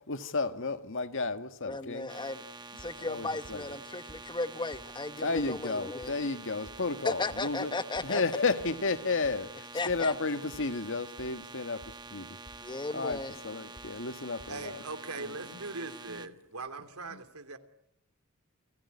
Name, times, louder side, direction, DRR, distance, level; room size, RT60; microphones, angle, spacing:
voice 1, 0.1-2.1 3.0-3.7 5.2-7.7 8.0-12.4 12.9-14.8 15.2-15.6 16.1-16.2 17.1-17.2, left 3 dB, 60° left, 1.7 m, -33 dB
voice 2, 1.7-2.4 2.8-6.1 7.0-8.2 9.7-10.1 12.6-13.4, left 3 dB, 20° left, 1.1 m, -35 dB
sound 1, 2.1-16.3, right 3 dB, 20° right, 1.4 m, -47 dB
sound 2, 2.2-2.5 2.8-3.8 4.1-4.5 4.7-6.4 6.6-9.6 9.9-12.2 12.4-13.5 13.7-14.1 14.4-14.6, equal, 45° left, 6.8 m, -55 dB
voice 3, 14.5-17.6, right 3 dB, 80° right, 3.0 m, -40 dB
30.0 x 20.5 x 9.7 m
head